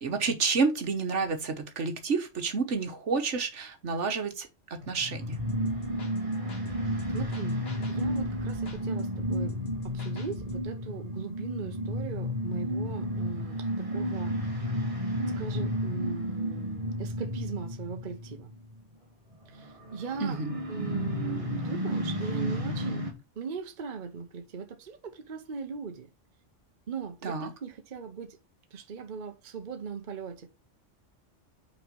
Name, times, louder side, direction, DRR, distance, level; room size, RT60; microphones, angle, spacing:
voice 1, 0.0-5.4 20.2-20.5 27.2-27.5, right 4 dB, 70° right, 1.5 m, -29 dB
sound 1, 4.8-18.8 19.3-23.1, equal, 25° right, 1.8 m, -32 dB
sound 2, 5.3-10.7, equal, 55° left, 1.7 m, -47 dB
voice 2, 7.1-9.6 9.8-14.7 15.3-18.5 19.5-20.4 20.7-23.1 23.4-26.1 26.9-28.4 28.7-30.5, right 5 dB, 40° right, 0.9 m, -39 dB
5.8 x 4.2 x 5.1 m
omnidirectional pair, 1.3 m